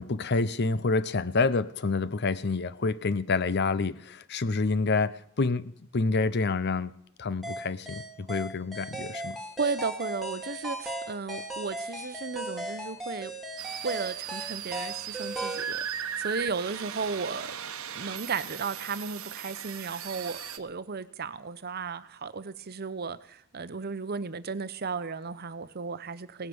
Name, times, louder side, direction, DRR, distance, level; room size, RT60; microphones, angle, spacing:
voice 1, 0.0-6.9 7.2-9.4, left 3 dB, 55° left, 0.7 m, -28 dB
sound 1, 7.4-15.7, right 1 dB, ahead, 2.1 m, -37 dB
voice 2, 9.6-13.3 13.8-17.5 17.9-26.5, right 4 dB, 50° right, 0.8 m, -34 dB
sound 2, 13.6-20.6, right 9 dB, 85° right, 1.1 m, -37 dB
18.0 x 9.8 x 7.0 m
head